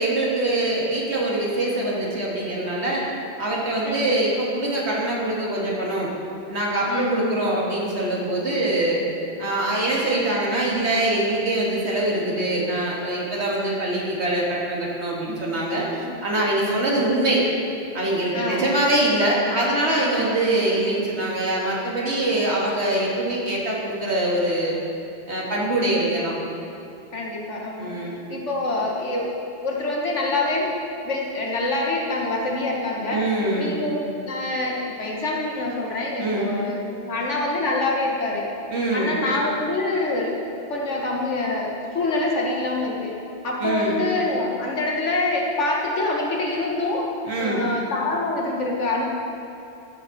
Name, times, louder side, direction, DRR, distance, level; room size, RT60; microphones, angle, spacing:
voice 1, 0.0-3.0 3.4-6.1 6.5-9.0 9.4-15.9 16.2-17.4 17.9-24.8 25.3-26.3 27.8-28.2 33.1-33.8 36.2-36.5 38.7-39.2 43.6-44.0 47.2-47.7, right 1 dB, 65° right, -4 dB, 2.2 m, -23 dB
voice 2, 6.9-7.4 16.0-16.1 18.3-18.7 20.1-20.4 25.8-26.1 27.1-27.9 28.3-29.3 29.6-30.7 31.1-33.2 33.6-38.5 38.9-40.3 40.7-43.1 43.4-47.1 47.4-49.0, left 2 dB, 85° left, -2 dB, 1.8 m, -26 dB
14.5 x 7.4 x 4.2 m, 2.7 s
omnidirectional pair, 1.2 m